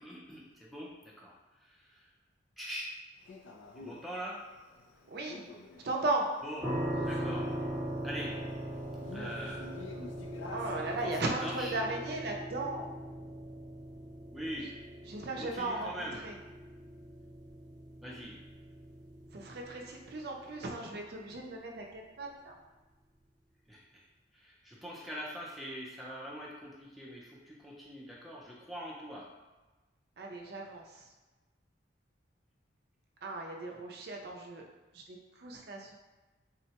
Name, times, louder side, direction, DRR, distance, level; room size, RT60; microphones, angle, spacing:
voice 1, 0.0-1.3 1.6-2.1 2.6-3.0 3.8-4.5 6.4-6.8 7.0-7.5 8.0-8.4 9.1-9.7 11.0-11.8 14.3-14.8 15.4-16.2 18.0-18.4 23.7-24.0 24.3-29.3, equal, ahead, -5 dB, 0.5 m, -43 dB
Male speech man speaking, 3.3-11.8, left 2 dB, 75° left, 0.4 m, -49 dB
voice 2, 5.1-5.5 5.8-6.3 10.5-12.9 15.1-16.4 19.3-22.6 30.2-31.0 33.2-34.6 34.9-35.9, right 2 dB, 55° right, 1 dB, 0.4 m, -36 dB
sound 1, 6.6-21.5, right 1 dB, 20° right, 1.0 m, -41 dB
3.7 x 2.1 x 2.8 m, 1.2 s
head